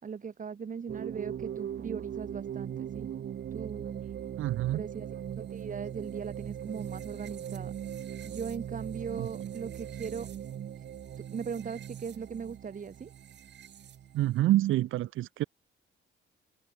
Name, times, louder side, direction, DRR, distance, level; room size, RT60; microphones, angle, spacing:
voice 1, 0.0-3.1 3.5-4.1 4.7-5.1 5.4-7.7 8.2-10.3 11.3-13.1, right 6 dB, 40° right, 3.4 m, -39 dB
sound 1, 0.9-14.4, right 9 dB, 60° right, 3.3 m, -40 dB
voice 2, 4.4-4.8 9.2-9.3 14.1-15.4, right 15 dB, 85° right, 3.1 m, -27 dB
cardioid pair, 90°, 20 cm